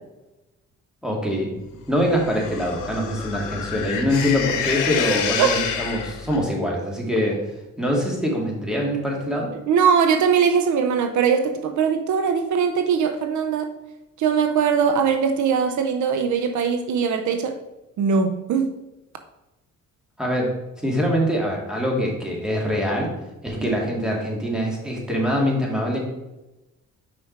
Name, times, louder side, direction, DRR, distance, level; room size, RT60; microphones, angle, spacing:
voice 1, 1.0-1.6 1.9-7.4 7.8-9.5 20.2-20.5 20.8-23.1 23.4-26.0, equal, ahead, -2 dB, 2.2 m, -24 dB
sound 1, 2.1-6.4, left 7 dB, 90° left, 0.9 m, -28 dB
voice 2, 9.7-13.7 14.2-17.6 18.0-18.8 23.6-23.8, right 6 dB, 70° right, 8 dB, 0.7 m, -21 dB
5.8 x 5.0 x 4.5 m, 0.99 s
cardioid pair, 90°, 30 cm